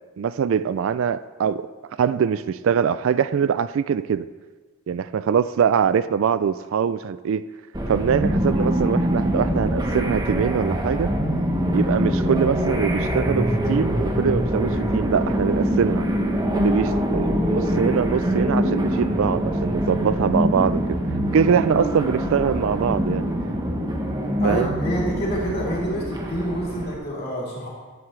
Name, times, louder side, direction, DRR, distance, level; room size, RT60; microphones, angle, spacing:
voice 1, 0.2-1.7 2.0-4.3 4.9-7.4 7.9-11.1 11.7-16.1 16.5-20.8 21.3-23.2 24.4-24.7, right 7 dB, 60° right, 15 dB, 0.3 m, -23 dB
sound 1, 7.7-26.9, equal, 20° right, 0.9 m, -24 dB
voice 2, 24.4-27.7, equal, 45° left, -5 dB, 3.1 m, -27 dB
12.5 x 9.6 x 3.2 m, 1.3 s
head